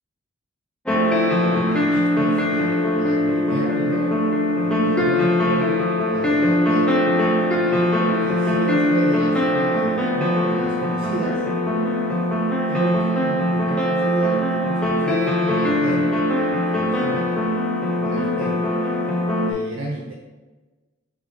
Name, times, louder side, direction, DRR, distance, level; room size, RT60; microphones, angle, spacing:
sound 1, 0.9-19.5, left 1 dB, 5° left, 0.4 m, -20 dB
voice 1, 1.3-4.2 4.6-6.9 7.6-11.5 12.7-16.2 16.7-17.2 18.0-18.7 19.4-20.1, right 2 dB, 85° right, -3 dB, 0.5 m, -32 dB
3.4 x 3.4 x 3.3 m, 1.2 s
head